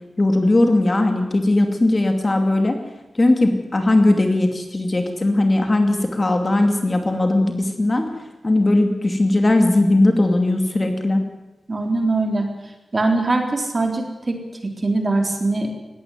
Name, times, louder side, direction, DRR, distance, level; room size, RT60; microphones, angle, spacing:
voice 1, 0.2-2.8 3.1-8.1 8.4-11.2, left 2 dB, 25° left, 5 dB, 2.6 m, -18 dB
voice 2, 11.7-12.5 12.9-15.7, right 2 dB, 30° right, 4 dB, 3.8 m, -22 dB
20.0 x 16.5 x 9.5 m, 1.0 s
wide cardioid pair, 150°, 0 cm